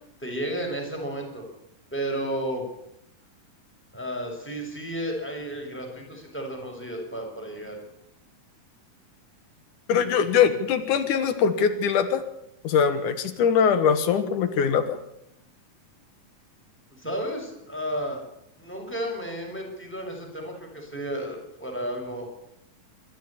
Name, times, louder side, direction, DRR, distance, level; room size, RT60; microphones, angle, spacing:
voice 1, 0.2-1.5 1.9-2.7 3.9-7.8 17.0-18.2 18.6-22.3, right 1 dB, 5° left, 1 dB, 5.8 m, -32 dB
voice 2, 9.9-12.2 12.6-15.0, left 7 dB, 70° left, 10 dB, 2.9 m, -22 dB
26.0 x 12.5 x 8.6 m, 0.79 s
omnidirectional pair, 3.9 m